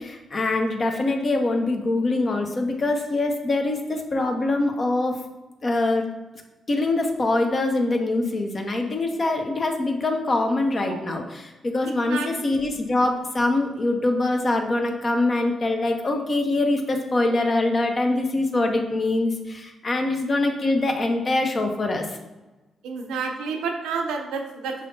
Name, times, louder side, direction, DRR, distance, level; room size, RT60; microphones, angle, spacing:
voice 1, 0.0-5.1 5.6-6.1 6.7-22.1, left 2 dB, 40° left, 3 dB, 0.8 m, -24 dB
voice 2, 11.8-12.3 12.6-12.7 22.8-24.7, right 5 dB, 75° right, 3 dB, 0.5 m, -30 dB
5.6 x 3.3 x 2.7 m, 1.1 s
hypercardioid pair, 40°, 0 cm